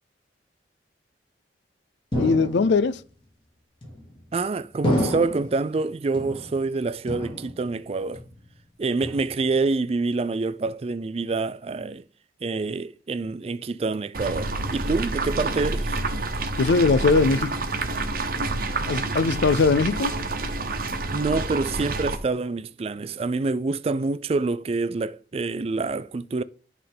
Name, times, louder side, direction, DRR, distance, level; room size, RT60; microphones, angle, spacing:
sound 1, 2.1-3.0 3.8-4.3 4.8-5.6 6.1-6.8 7.1-7.8 8.1-8.6 9.0-9.6, left 1 dB, 30° left, 2.4 m, -29 dB
voice 1, 2.2-3.0 16.6-17.5 18.9-20.1, left 4 dB, 75° left, 0.4 m, -20 dB
voice 2, 4.3-8.2 8.8-12.0 12.4-16.0 21.1-26.4, right 3 dB, 35° right, 0.3 m, -27 dB
sound 2, 14.1-22.2, right 3 dB, 55° right, 1.1 m, -28 dB
11.0 x 3.7 x 5.4 m
head